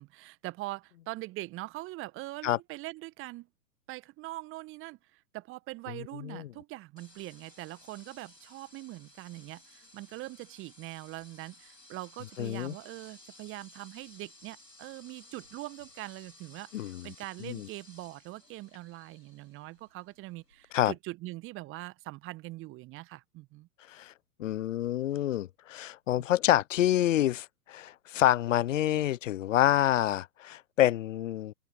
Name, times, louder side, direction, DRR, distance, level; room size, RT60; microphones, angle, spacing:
voice 1, 0.0-3.5 3.9-23.7 26.1-26.2, right 19 dB, 25° right, 1.6 m, -42 dB
sound 1, 7.0-20.8, left 2 dB, 90° left, 4.3 m, -57 dB
voice 2, 12.4-12.7 16.7-17.1 17.4-17.7 20.7-20.9 23.9-24.1 24.4-31.5, left 13 dB, 50° left, 1.0 m, -27 dB
open air
figure-of-eight pair, 105°, 48 cm